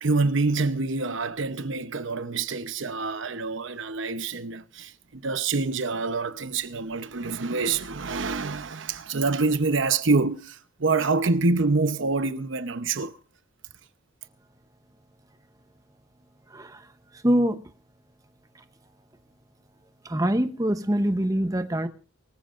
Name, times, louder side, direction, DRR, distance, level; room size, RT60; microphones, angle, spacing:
voice 1, 0.0-13.2, right 3 dB, 70° right, 0.8 m, -26 dB
voice 2, 16.5-16.9 17.1-17.6 20.0-21.9, equal, 15° right, 0.8 m, -24 dB
23.5 x 14.5 x 2.5 m
head